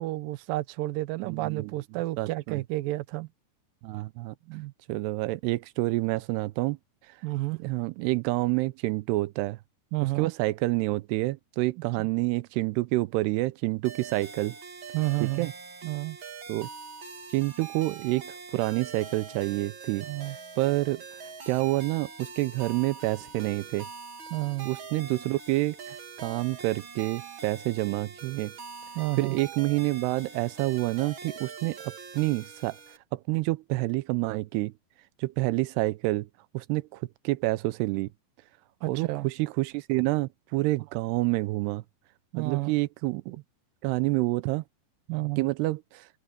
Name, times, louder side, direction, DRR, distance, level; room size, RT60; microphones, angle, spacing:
voice 1, 0.0-3.3 4.5-4.7 7.2-7.6 9.9-10.3 14.9-15.5 15.8-16.2 20.1-20.4 24.3-24.7 29.0-29.4 38.8-39.3 42.3-42.7 45.1-45.5, right 19 dB, 70° right, 2.5 m, -31 dB
voice 2, 1.2-1.7 2.2-2.6 3.8-4.3 4.9-6.8 7.1-7.2 7.6-9.6 10.2-14.6 15.2-15.5 16.5-16.7 17.3-23.9 24.7-28.5 29.2-32.8 33.1-34.7 35.2-36.3 36.5-38.1 38.9-41.8 42.3-43.4 43.8-44.6 45.4-46.1, right 20 dB, 90° right, 2.7 m, -28 dB
sound 1, 13.8-33.0, right 5 dB, 40° right, 2.0 m, -43 dB
open air
omnidirectional pair, 4.6 m